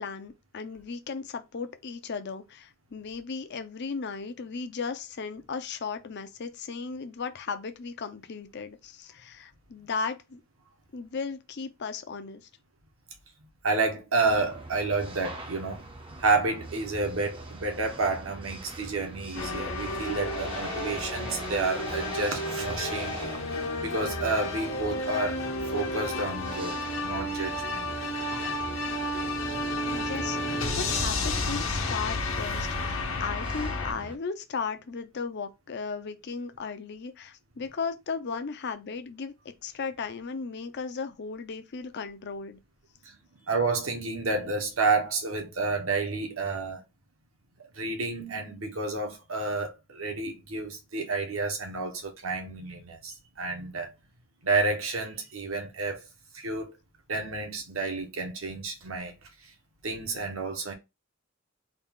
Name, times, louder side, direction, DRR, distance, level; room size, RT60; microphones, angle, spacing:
voice 1, 0.0-10.4 10.9-12.4 29.9-39.3 39.6-42.6, left 5 dB, 55° left, 0.6 m, -36 dB
voice 2, 13.6-15.9 16.2-23.2 23.8-25.4 25.7-27.9 43.0-43.2 43.5-46.8 47.7-53.9 54.4-56.1 56.3-56.8 57.1-59.1 59.8-60.7, right 3 dB, 75° right, 1.1 m, -30 dB
sound 1, 14.2-34.2, right 2 dB, 25° right, 0.6 m, -43 dB
sound 2, 19.3-33.9, left 2 dB, 75° left, 1.2 m, -31 dB
3.9 x 2.4 x 3.5 m
head